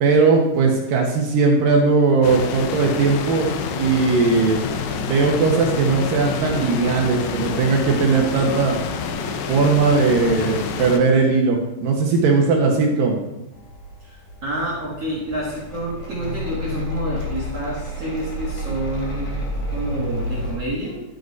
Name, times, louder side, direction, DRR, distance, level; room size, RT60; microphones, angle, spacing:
voice 1, 0.0-3.5 3.8-4.6 5.0-8.8 9.5-13.2, right 4 dB, 80° right, 1 dB, 2.0 m, -18 dB
sound 1, 2.2-11.0, left 6 dB, 85° left, 3.2 m, -28 dB
sound 2, 13.5-20.6, left 1 dB, 50° left, 3.4 m, -30 dB
voice 2, 14.0-19.4 19.7-21.0, right 1 dB, 60° right, -6 dB, 1.6 m, -28 dB
12.0 x 5.0 x 4.7 m, 0.95 s
omnidirectional pair, 5.3 m